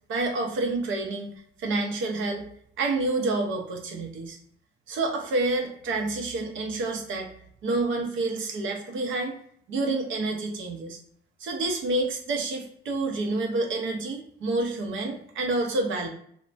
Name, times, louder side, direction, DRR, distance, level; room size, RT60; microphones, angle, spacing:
voice 1, 0.1-1.3 1.6-2.5 2.8-4.4 4.9-7.3 7.6-9.4 9.7-11.0 11.4-16.1, right 2 dB, 80° right, 2 dB, 0.7 m, -28 dB
3.2 x 2.1 x 2.4 m, 0.65 s
cardioid pair, 90°, 20 cm